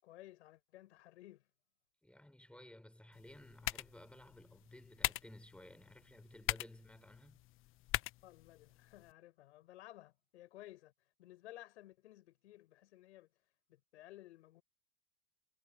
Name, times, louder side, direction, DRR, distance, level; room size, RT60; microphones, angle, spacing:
voice 1, 0.0-1.5 8.2-10.9 11.2-13.3 13.7-14.6, left 15 dB, 65° left, 7.2 m, -56 dB
voice 2, 2.0-7.4, left 1 dB, 5° left, 5.7 m, -56 dB
sound 1, 3.1-9.1, left 16 dB, 35° left, 1.2 m, -43 dB
figure-of-eight pair, 95°, 37 cm